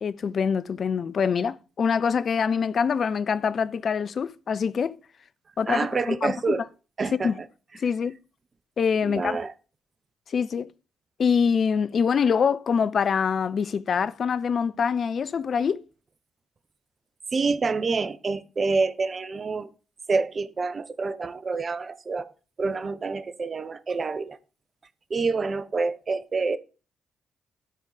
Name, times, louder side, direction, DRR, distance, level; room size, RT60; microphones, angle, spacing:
voice 1, 0.0-5.0 5.6-6.6 7.1-7.4 7.8-8.2 8.8-9.4 10.3-10.7 11.2-15.8, left 6 dB, 50° left, 0.5 m, -25 dB
voice 2, 5.7-6.6 7.0-7.3 9.0-9.5 17.3-19.7 20.1-22.3 22.6-24.4 25.1-26.6, right 4 dB, 40° right, 0.9 m, -27 dB
12.0 x 5.5 x 5.0 m
figure-of-eight pair, 40°, 0 cm